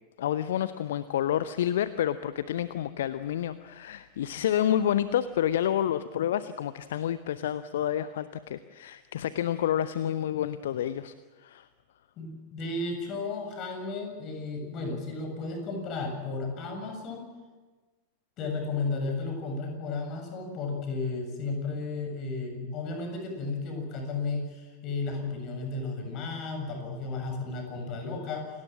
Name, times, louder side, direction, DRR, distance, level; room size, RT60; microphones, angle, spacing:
voice 1, 0.2-11.1 11.4-11.7, left 10 dB, 60° left, 14 dB, 0.8 m, -29 dB
voice 2, 12.2-17.2 18.4-28.5, left 3 dB, 35° left, 4 dB, 7.5 m, -33 dB
28.5 x 19.5 x 7.5 m, 1.3 s
figure-of-eight pair, 90°, 0 cm